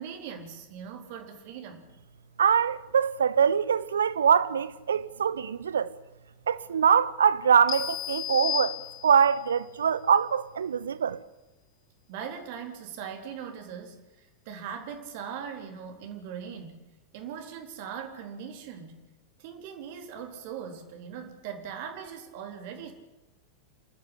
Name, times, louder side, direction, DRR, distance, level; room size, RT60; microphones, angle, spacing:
voice 1, 0.0-1.9 12.1-16.8 17.1-19.0 19.4-22.9, right 7 dB, 50° right, 3.8 m, -40 dB
voice 2, 2.4-5.9 6.5-8.8 9.0-11.2, right 7 dB, 70° right, 1.0 m, -23 dB
sound 1, 7.7-9.4, left 12 dB, 30° left, 1.0 m, -33 dB
28.5 x 13.0 x 9.8 m
figure-of-eight pair, 90°, 0 cm